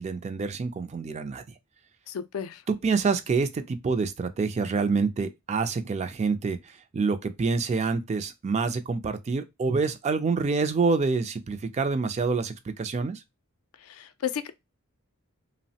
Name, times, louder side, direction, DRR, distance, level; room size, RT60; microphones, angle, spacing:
voice 1, 0.0-1.4 2.7-13.2, right 4 dB, 30° right, 0.3 m, -27 dB
voice 2, 2.1-2.6 14.0-14.5, left 8 dB, 75° left, 0.4 m, -32 dB
3.1 x 2.0 x 2.7 m
head